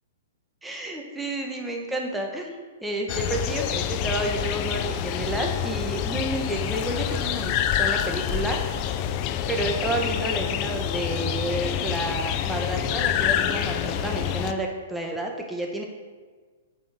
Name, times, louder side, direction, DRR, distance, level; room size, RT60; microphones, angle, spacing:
voice 1, 0.6-8.7 9.5-15.8, right 2 dB, 5° right, 1 dB, 1.5 m, -30 dB
sound 1, 3.1-14.5, left 10 dB, 40° left, 0.6 m, -27 dB
9.0 x 5.6 x 6.0 m, 1.4 s
hypercardioid pair, 120°, 0 cm